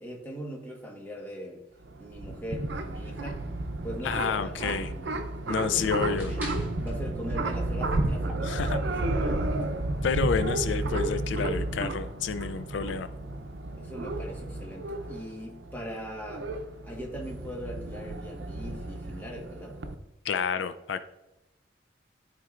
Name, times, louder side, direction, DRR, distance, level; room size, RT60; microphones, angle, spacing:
voice 1, 0.0-1.6 2.0-3.5 3.8-6.4 6.8-9.6 13.7-16.5 16.8-19.8, equal, 10° left, -1 dB, 1.2 m, -40 dB
sound 1, 1.8-19.9, right 2 dB, 85° right, 0.6 m, -32 dB
voice 2, 4.0-4.9 5.5-6.3 8.4-8.8 10.0-13.1 20.2-21.0, left 6 dB, 90° left, 11 dB, 0.4 m, -29 dB
sound 2, 6.2-9.0, right 1 dB, 10° right, 1.6 m, -46 dB
12.5 x 4.5 x 2.5 m, 0.93 s
head